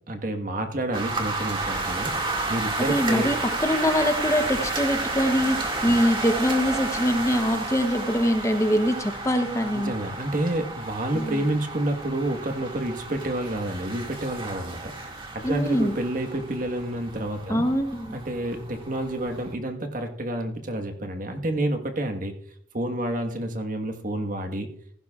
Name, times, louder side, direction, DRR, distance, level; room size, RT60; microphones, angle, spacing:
voice 1, 0.1-3.3 5.8-6.0 9.7-14.9 15.3-17.6 18.1-22.3 22.7-24.7, right 1 dB, 45° right, 6 dB, 1.4 m, -29 dB
sound 1, 0.9-19.5, right 2 dB, 30° right, 2.0 m, -32 dB
voice 2, 2.9-9.9 11.1-11.4 15.4-15.9 17.5-18.2, equal, 15° left, 6 dB, 0.8 m, -24 dB
16.0 x 15.5 x 2.4 m, 0.62 s
head